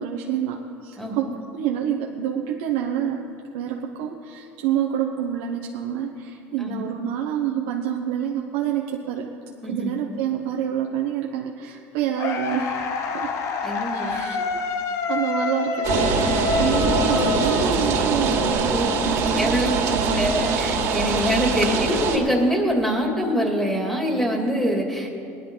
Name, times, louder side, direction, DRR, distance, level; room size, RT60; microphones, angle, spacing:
voice 1, 0.0-3.2 3.5-9.3 9.7-13.3 13.9-14.5 15.1-20.4, right 9 dB, 80° right, 1 dB, 1.0 m, -28 dB
voice 2, 1.0-1.3 6.6-6.9 9.6-9.9 13.6-14.2 18.7-18.9 19.3-25.1, equal, 5° left, 0 dB, 2.7 m, -24 dB
sound 1, 12.2-18.3, left 5 dB, 55° left, 1.1 m, -27 dB
sound 2, 15.8-22.2, right 4 dB, 55° right, 2.6 m, -22 dB
19.0 x 11.0 x 3.9 m, 2.5 s
supercardioid pair, 95°, 6 cm